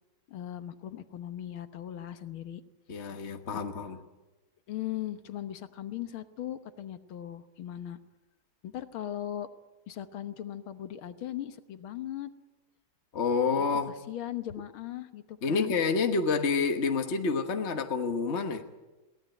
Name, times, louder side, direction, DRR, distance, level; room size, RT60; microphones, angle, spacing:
voice 1, 0.3-2.6 4.7-8.0 8.6-9.5 9.9-12.3 14.1-15.7, left 12 dB, 80° left, 10 dB, 2.0 m, -38 dB
voice 2, 2.9-4.0 13.1-13.9 15.4-18.6, left 4 dB, 40° left, 5 dB, 1.3 m, -28 dB
22.5 x 18.0 x 9.1 m, 1.1 s
omnidirectional pair, 2.3 m